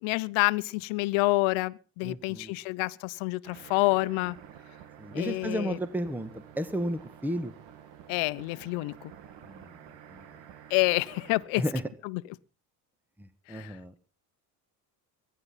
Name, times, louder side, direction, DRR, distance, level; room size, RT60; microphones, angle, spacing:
voice 1, 0.0-4.4 5.1-5.8 8.1-9.1 10.7-11.7 12.0-12.2 13.5-14.0, left 23 dB, 80° left, 1.0 m, -28 dB
voice 2, 2.0-2.5 5.0-7.5 9.4-9.8 10.1-10.4 11.6-11.8 13.2-13.9, equal, 5° right, 1.6 m, -33 dB
sound 1, 3.4-11.5, right 9 dB, 65° right, 2.6 m, -50 dB
22.5 x 10.5 x 5.7 m
supercardioid pair, 95°, 48 cm